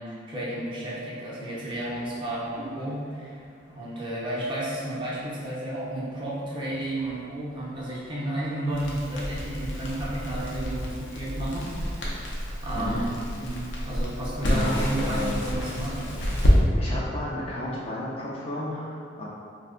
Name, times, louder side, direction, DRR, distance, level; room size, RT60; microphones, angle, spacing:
voice 1, 0.0-3.4 3.7-12.3 12.6-13.1 13.4-16.0, right 1 dB, 25° right, -7 dB, 0.5 m, -32 dB
sound 1, 1.7-10.9, equal, 65° left, 1.0 m, -46 dB
Crackle, 8.7-16.6, equal, 85° left, 0.6 m, -28 dB
voice 2, 14.4-15.4 16.8-19.2, left 1 dB, 30° left, -6 dB, 0.4 m, -33 dB
2.7 x 2.1 x 3.6 m, 2.3 s
head